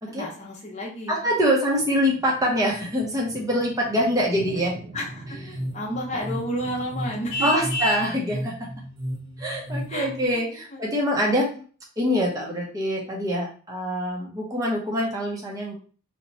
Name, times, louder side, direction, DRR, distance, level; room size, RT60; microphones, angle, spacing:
voice 1, 0.1-1.2 4.9-7.5 9.9-10.4 10.7-10.8, equal, 30° left, -2 dB, 0.8 m, -32 dB
voice 2, 1.1-4.8 5.5-5.6 7.4-8.7 9.4-11.5 12.0-15.7, equal, 15° right, -2 dB, 0.7 m, -24 dB
sound 1, 1.7-7.4, right 2 dB, 60° right, 0.4 m, -43 dB
sound 2, 5.1-10.3, equal, 80° right, 0.9 m, -35 dB
Vehicle horn car horn honking, 7.3-8.1, left 2 dB, 65° left, 0.6 m, -27 dB
2.8 x 2.2 x 4.0 m, 0.40 s
head